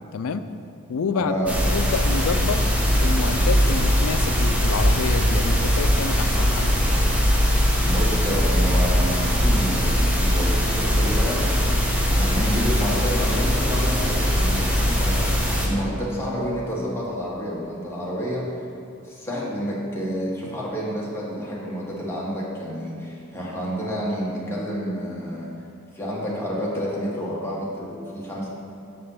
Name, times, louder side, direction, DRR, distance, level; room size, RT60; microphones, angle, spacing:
voice 1, 0.1-0.4 0.9-1.4 1.7-2.6 3.0-6.8, left 5 dB, 75° left, 10 dB, 0.4 m, -28 dB
voice 2, 1.1-1.9 7.8-11.5 12.0-15.2 15.6-18.5 19.0-25.5 25.9-28.5, equal, 10° left, -6 dB, 1.5 m, -29 dB
sound 1, 1.5-15.7, equal, 5° right, 1.0 m, -21 dB
6.7 x 5.4 x 5.6 m, 2.6 s
head